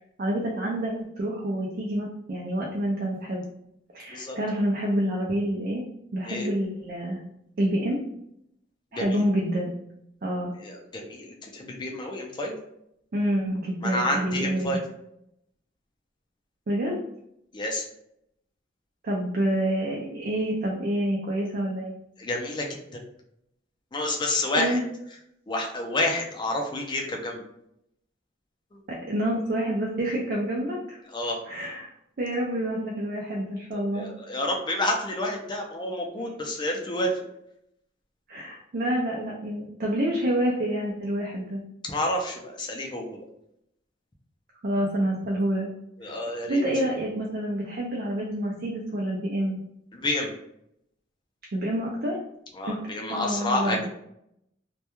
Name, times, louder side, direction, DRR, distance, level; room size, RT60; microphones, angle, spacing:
voice 1, 0.2-3.4 3.9-5.8 6.1-7.2 7.6-8.0 8.9-9.7 10.2-10.5 13.1-14.8 16.7-17.0 19.0-21.9 24.6-24.8 28.9-31.0 31.5-31.9 32.2-34.1 38.3-41.6 44.6-45.7 46.5-49.6 51.5-52.2 52.7-52.8 53.1-53.8, right 1 dB, 50° right, -2 dB, 0.4 m, -27 dB
voice 2, 8.9-9.2 10.6-12.6 13.8-14.8 17.5-17.9 22.2-22.8 23.9-24.8 25.5-27.4 28.7-28.8 31.1-31.4 33.7-37.3 41.8-43.2 46.0-46.6 49.9-50.3 52.5-53.9, left 1 dB, 25° left, 1 dB, 0.4 m, -29 dB
2.2 x 2.2 x 2.9 m, 0.77 s
head